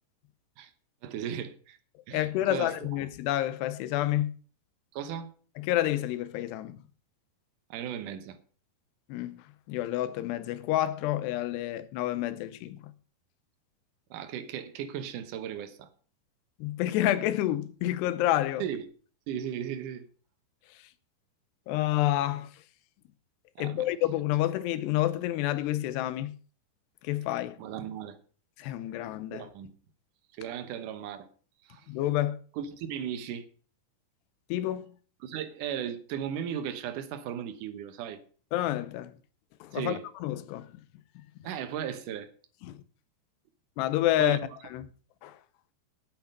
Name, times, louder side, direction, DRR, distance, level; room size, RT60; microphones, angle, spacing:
voice 1, 1.0-1.8 2.1-3.0 4.9-5.3 7.7-8.4 14.1-15.9 18.6-18.9 19.3-20.1 23.6-23.9 27.6-28.2 29.3-29.7 30.4-31.3 31.7-31.9 32.5-33.4 35.2-38.2 39.7-40.0 41.4-42.3 44.2-44.6, right 9 dB, 70° right, 2.1 m, -36 dB
voice 2, 2.1-4.3 5.6-6.8 9.1-9.4 9.7-12.9 16.6-18.6 21.7-22.5 23.6-26.3 27.0-27.6 28.6-29.5 31.9-32.4 34.5-34.9 38.5-39.1 39.6-40.7 42.7-42.8 43.8-44.4 44.7-44.9 45.2-45.4, left 14 dB, 85° left, 2.8 m, -29 dB
9.4 x 8.8 x 6.6 m
omnidirectional pair, 4.9 m